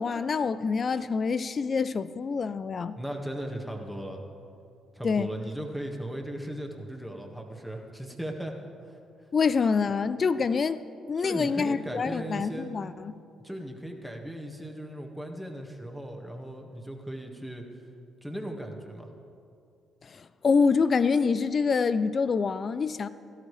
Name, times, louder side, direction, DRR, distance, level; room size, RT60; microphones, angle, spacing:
voice 1, 0.0-3.0 5.0-5.3 9.3-10.8 11.1-13.1 20.1-23.1, left 5 dB, 45° left, 15 dB, 0.5 m, -26 dB
voice 2, 2.9-4.2 4.9-8.5 8.9-9.0 11.2-12.7 13.4-17.6 18.2-19.1, right 1 dB, ahead, 1 dB, 1.8 m, -37 dB
17.0 x 13.0 x 3.4 m, 2.5 s
supercardioid pair, 60°, 0 cm